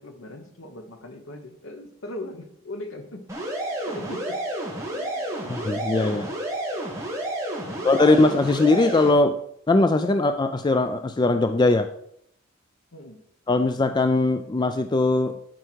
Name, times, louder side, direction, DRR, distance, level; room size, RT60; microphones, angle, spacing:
voice 1, 0.0-3.3 3.7-4.4 4.9-5.6 7.6-8.2 12.9-13.2, left 1 dB, 65° left, 6 dB, 1.2 m, -40 dB
sound 1, 3.3-9.1, right 1 dB, 15° right, 2.2 m, -30 dB
voice 2, 5.5-6.3 7.8-9.4 9.7-11.9 13.5-15.3, left 2 dB, 20° left, 9 dB, 0.3 m, -20 dB
11.5 x 4.7 x 4.6 m, 0.70 s
head